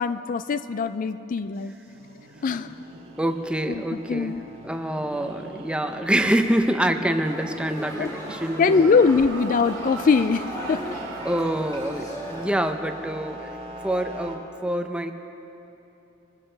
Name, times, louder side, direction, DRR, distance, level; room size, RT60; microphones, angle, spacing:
voice 1, 0.0-1.7 2.4-2.7 3.7-4.4 8.0-8.1 8.6-10.9, left 5 dB, 45° left, 11 dB, 0.3 m, -22 dB
sound 1, 1.6-14.4, equal, 30° right, 1.6 m, -43 dB
Laughter, 1.9-12.3, right 3 dB, 85° right, 1.1 m, -42 dB
voice 2, 3.2-4.4 4.6-9.0 11.2-13.6 13.8-15.1, right 1 dB, 5° right, 6 dB, 0.6 m, -26 dB
sound 2, 7.2-12.5, equal, 20° left, 2.8 m, -38 dB
24.0 x 14.0 x 3.4 m, 3.0 s
head